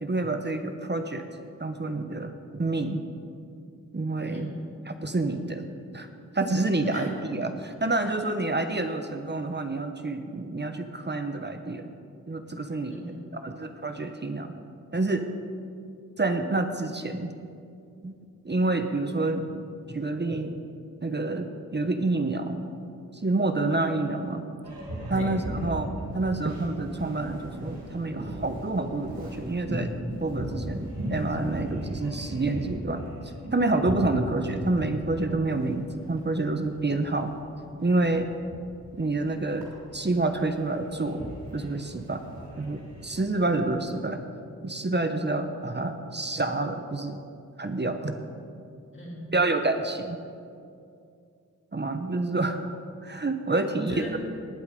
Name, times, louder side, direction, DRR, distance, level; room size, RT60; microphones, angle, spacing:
voice 1, 0.0-1.3 1.6-3.0 3.9-4.5 4.9-5.7 5.9-6.1 6.3-11.9 12.3-13.0 13.3-14.5 14.9-15.3 16.2-17.3 18.0-18.1 18.4-20.6 21.0-22.6 23.1-24.5 25.1-29.9 30.2-37.3 37.8-38.3 38.9-41.2 41.5-42.2 42.6-44.2 44.6-47.2 47.6-48.2 49.3-50.2 51.7-52.6 53.0-53.9, right 2 dB, 30° right, 7 dB, 1.1 m, -28 dB
voice 2, 4.3-4.6 6.8-7.1 8.2-8.3 12.9-13.4 25.1-25.4 48.9-49.3 53.7-54.2, equal, 35° left, -4 dB, 2.9 m, -40 dB
Boat Water vehicle, 24.6-43.6, right 1 dB, 85° right, 3.6 m, -38 dB
19.0 x 8.1 x 5.4 m, 2.4 s
cardioid pair, 45°, 35 cm